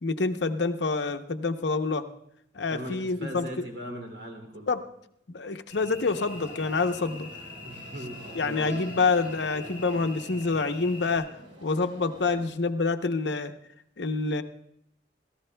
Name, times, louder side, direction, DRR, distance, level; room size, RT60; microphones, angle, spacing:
voice 1, 0.0-2.1 2.5-3.6 4.7-4.8 5.3-7.3 8.3-11.3 11.6-13.5 14.0-14.4, left 4 dB, 70° left, 8 dB, 0.8 m, -27 dB
voice 2, 2.6-4.7 7.6-8.9, equal, 70° right, 3 dB, 2.7 m, -39 dB
Cricket / Buzz, 5.7-11.2, left 1 dB, 10° right, 6.5 m, -43 dB
sound 1, 6.1-12.5, equal, 35° right, 3.8 m, -48 dB
28.0 x 14.5 x 2.2 m, 0.74 s
head